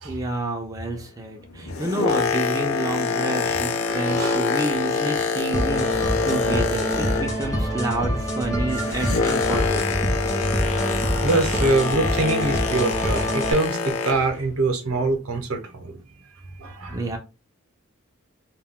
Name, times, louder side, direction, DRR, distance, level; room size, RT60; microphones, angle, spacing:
voice 1, 0.0-10.2 16.9-17.2, right 2 dB, 15° right, 0.4 m, -29 dB
Boat Water vehicle, 1.5-7.6 7.9-14.4 15.0-15.1, left 5 dB, 75° left, 0.5 m, -26 dB
voice 2, 3.8-4.4 11.2-16.0 16.6-17.0, right 2 dB, 85° right, 0.7 m, -24 dB
sound 1, 5.5-13.5, equal, 15° left, 0.7 m, -26 dB
2.2 x 2.2 x 3.5 m
head